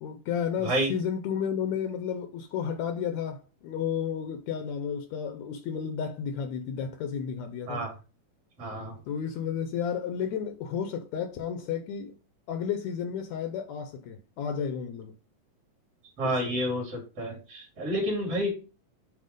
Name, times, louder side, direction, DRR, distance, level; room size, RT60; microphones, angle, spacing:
voice 1, 0.0-7.8 9.1-12.1 12.5-15.1 16.2-16.5, left 7 dB, 75° left, 1.8 m, -32 dB
voice 2, 0.6-0.9 7.7-7.9 8.6-9.0 16.2-18.5, equal, 50° right, 3.4 m, -29 dB
7.7 x 3.2 x 5.2 m
omnidirectional pair, 3.5 m